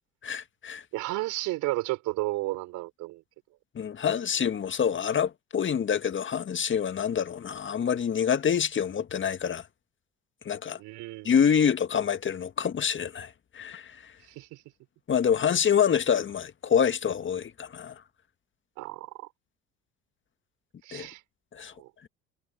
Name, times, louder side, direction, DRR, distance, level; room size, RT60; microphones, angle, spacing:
voice 1, 0.2-0.8 3.7-9.6 10.4-10.8 11.2-14.1 15.1-18.0 20.9-21.1 21.5-21.7, left 7 dB, 35° left, 1.8 m, -26 dB
voice 2, 0.9-3.2 10.8-11.4 14.3-14.6 18.8-19.3 20.8-21.2 21.8-21.9, right 19 dB, 65° right, 4.9 m, -33 dB
hypercardioid pair, 60°, 32 cm